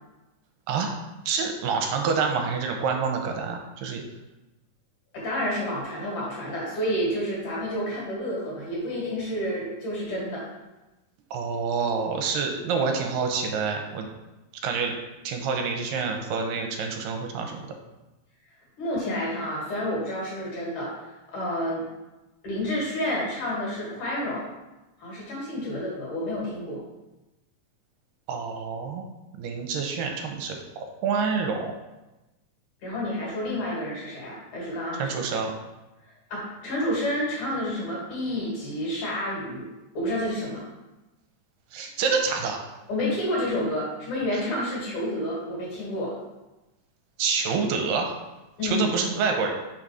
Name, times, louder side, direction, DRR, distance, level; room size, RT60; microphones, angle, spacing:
voice 1, 1.3-4.0 11.3-14.1 14.6-15.0 15.2-17.6 28.3-29.0 29.4-31.7 35.0-35.5 41.7-42.7 47.2-48.1 48.6-49.5, right 5 dB, 80° right, 3 dB, 2.3 m, -27 dB
voice 2, 5.1-10.5 18.8-21.8 22.4-24.4 25.0-26.8 32.8-35.2 36.3-39.7 39.9-40.6 42.9-46.1 48.6-48.9, left 1 dB, 65° left, -5 dB, 3.2 m, -29 dB
5.9 x 3.9 x 4.8 m, 1.1 s
omnidirectional pair, 3.9 m